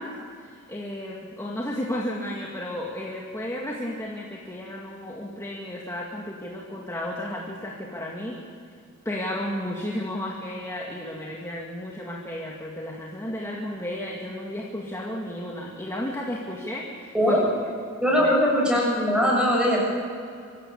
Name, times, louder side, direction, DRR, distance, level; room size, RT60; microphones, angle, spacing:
voice 1, 0.0-8.4 9.0-17.5 18.1-18.3, left 1 dB, 15° left, -2 dB, 2.0 m, -33 dB
voice 2, 18.0-19.8, equal, 5° right, -3 dB, 6.7 m, -21 dB
25.0 x 15.0 x 8.6 m, 2.4 s
head